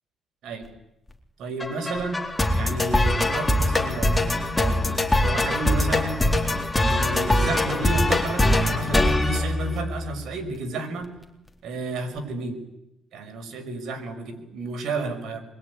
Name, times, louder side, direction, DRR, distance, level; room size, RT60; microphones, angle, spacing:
voice 1, 1.4-2.2 2.5-6.1 6.8-11.1 11.6-12.6 13.1-15.4, right 3 dB, 75° right, 6 dB, 6.1 m, -32 dB
sound 1, 1.6-10.2, left 1 dB, 10° left, 3.9 m, -23 dB
26.0 x 22.5 x 10.0 m, 0.88 s
cardioid pair, 90°, 0 cm